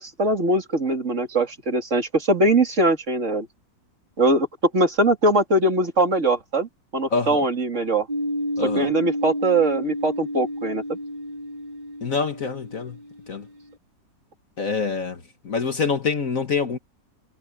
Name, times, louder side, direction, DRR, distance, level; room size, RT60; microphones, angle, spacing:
voice 1, 0.0-3.5 4.2-4.5 4.7-8.1 8.6-11.0, right 2 dB, 40° right, 3.2 m, -21 dB
voice 2, 7.1-7.4 8.6-8.9 12.0-13.0 13.3-13.5 14.6-16.8, left 5 dB, 50° left, 1.8 m, -26 dB
sound 1, 8.1-13.6, equal, 80° right, 6.0 m, -31 dB
omnidirectional pair, 1.9 m